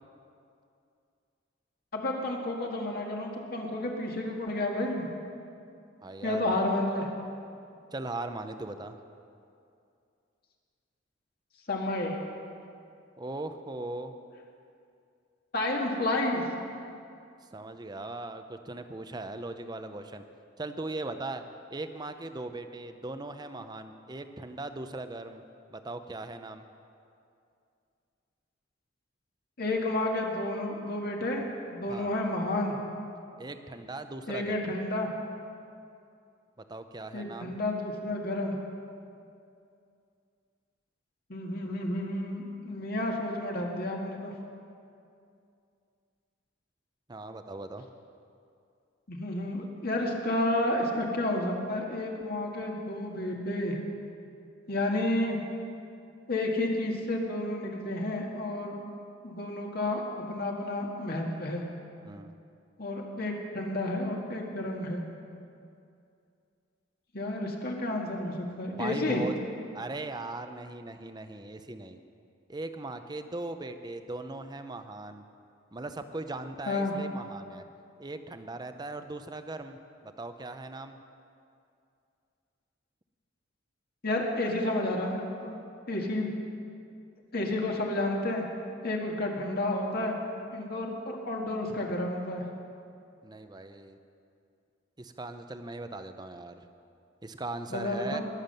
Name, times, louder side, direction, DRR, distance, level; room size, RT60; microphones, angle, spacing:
voice 1, 1.9-5.1 6.2-7.1 11.7-12.2 15.5-16.4 29.6-32.8 34.3-35.1 37.1-38.6 41.3-44.3 49.1-53.8 54.7-55.4 56.3-58.8 59.2-61.6 62.8-65.0 67.1-69.2 76.7-77.0 84.0-85.5 85.9-86.3 87.3-88.4 88.8-90.2 90.5-92.4 97.7-98.2, left 1 dB, 50° left, 0 dB, 1.8 m, -31 dB
voice 2, 6.0-6.6 7.9-9.0 13.2-14.1 17.5-20.2 20.6-21.4 21.7-25.4 25.7-26.6 31.9-32.1 33.4-34.7 36.7-37.6 47.1-47.9 62.0-62.3 68.8-69.3 69.7-72.0 72.5-75.2 75.7-77.6 78.0-81.0 93.2-94.0 95.0-96.6 97.2-98.2, right 2 dB, 20° right, 8 dB, 0.7 m, -39 dB
20.5 x 7.4 x 6.7 m, 2.5 s
head